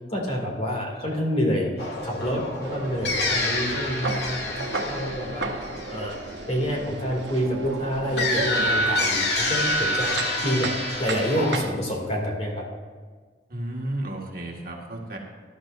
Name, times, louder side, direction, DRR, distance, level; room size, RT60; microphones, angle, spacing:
voice 1, 0.1-5.5 5.9-6.2 6.5-10.2 10.4-10.7 11.0-12.6, equal, 35° left, -1 dB, 2.5 m, -27 dB
sound 1, 1.8-6.6 8.2-11.6, left 1 dB, 65° left, 1.6 m, -27 dB
sound 2, 2.6-11.7, right 3 dB, 85° right, 1.0 m, -34 dB
voice 2, 13.5-15.2, right 1 dB, 55° right, -1 dB, 1.9 m, -33 dB
18.0 x 11.5 x 2.6 m, 1.5 s
head